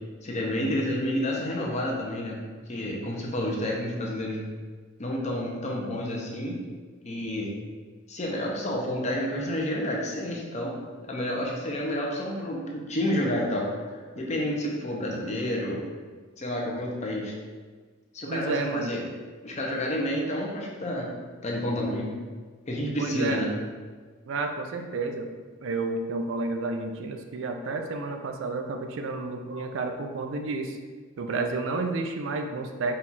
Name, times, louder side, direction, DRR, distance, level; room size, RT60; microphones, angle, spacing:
voice 1, 0.2-2.4 2.7-4.4 5.0-6.6 7.0-7.5 8.1-10.7 11.0-15.8 16.4-17.3 18.1-19.0 19.4-21.1 21.4-22.1 22.7-23.5, left 1 dB, 30° left, -2 dB, 0.6 m, -29 dB
voice 2, 18.3-19.0 23.0-23.4 24.3-25.3 25.6-30.8 31.2-33.0, right 3 dB, 65° right, 5 dB, 0.4 m, -31 dB
4.2 x 2.4 x 4.0 m, 1.5 s
head